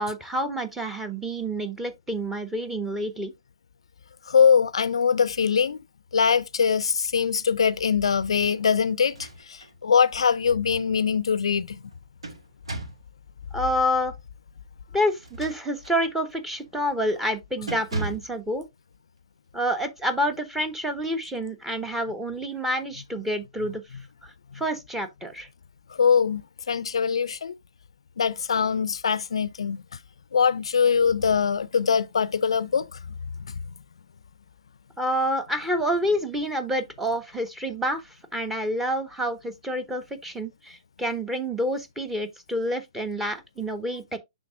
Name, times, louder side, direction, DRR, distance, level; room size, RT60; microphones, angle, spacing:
voice 1, 0.0-3.3 13.5-14.1 14.9-18.7 19.5-23.8 24.2-25.5 35.0-38.0 38.3-44.2, equal, 5° right, 0.9 m, -28 dB
voice 2, 4.3-5.8 6.1-11.8 26.0-26.4 26.7-27.5 28.2-29.8 30.3-32.9, left 6 dB, 75° left, 0.4 m, -22 dB
sound 1, 9.0-9.8 10.2-10.3 11.8-13.1 15.1-16.0 16.5-16.8 17.1-17.3 17.7-18.4, right 2 dB, 80° right, 1.4 m, -36 dB
10.5 x 3.7 x 2.5 m
figure-of-eight pair, 125°, 3 cm